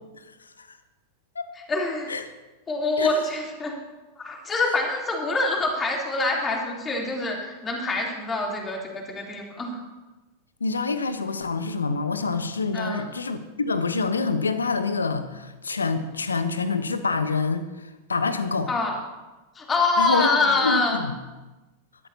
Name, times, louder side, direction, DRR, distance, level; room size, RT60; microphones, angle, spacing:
voice 1, 1.7-2.1 2.7-3.8 4.2-9.8 12.7-13.1 18.7-19.0 19.5-21.0, left 3 dB, 20° left, -1 dB, 3.4 m, -25 dB
voice 2, 10.6-17.6 18.1-18.7 20.0-20.3 20.6-21.1, left 4 dB, 75° left, 10 dB, 1.0 m, -26 dB
20.0 x 13.0 x 2.9 m, 1.1 s
figure-of-eight pair, 90°, 0 cm